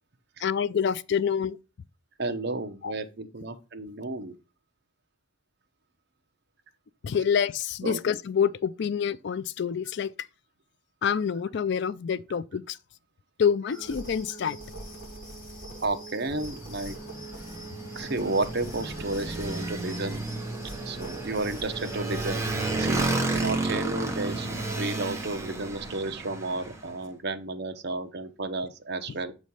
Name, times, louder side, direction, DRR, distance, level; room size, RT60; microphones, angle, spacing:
voice 1, 0.4-1.6 2.8-2.9 7.0-10.3 11.0-12.8 13.4-14.6, left 7 dB, 55° left, 0.3 m, -27 dB
voice 2, 2.2-4.3 7.8-8.0 15.8-17.0 17.9-20.2 20.8-24.5 24.8-29.3, right 2 dB, 50° right, 0.8 m, -32 dB
sound 1, 13.7-23.6, right 2 dB, 40° left, 2.8 m, -42 dB
Motorcycle, 16.2-26.9, right 2 dB, 15° right, 0.8 m, -32 dB
7.4 x 3.2 x 5.4 m
head